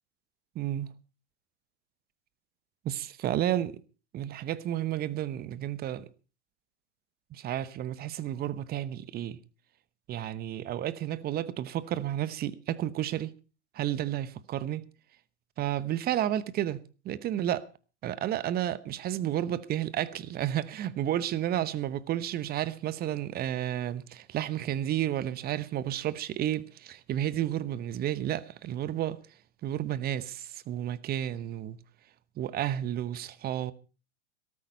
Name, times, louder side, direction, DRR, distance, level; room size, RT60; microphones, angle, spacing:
voice 1, 0.5-0.9 2.9-3.8 4.1-6.0 7.3-9.4 10.1-13.3 13.7-14.9 15.6-16.8 17.0-17.6 18.0-29.2 29.6-31.8 32.4-33.7, right 12 dB, 25° right, 0.9 m, -31 dB
13.5 x 13.0 x 5.3 m
hypercardioid pair, 105°, 36 cm